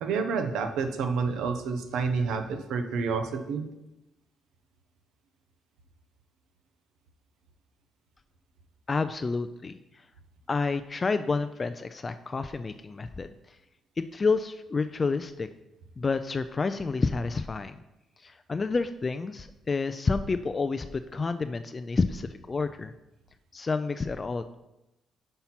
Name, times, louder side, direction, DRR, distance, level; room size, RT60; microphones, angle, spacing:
voice 1, 0.0-3.6, right 5 dB, 85° right, 7 dB, 0.7 m, -29 dB
voice 2, 8.9-9.8 10.5-13.6 14.0-15.5 16.0-17.8 18.2-22.9 23.5-24.6, left 4 dB, 30° left, 10 dB, 0.3 m, -29 dB
5.6 x 4.4 x 5.8 m, 0.94 s
cardioid pair, 90°, 0 cm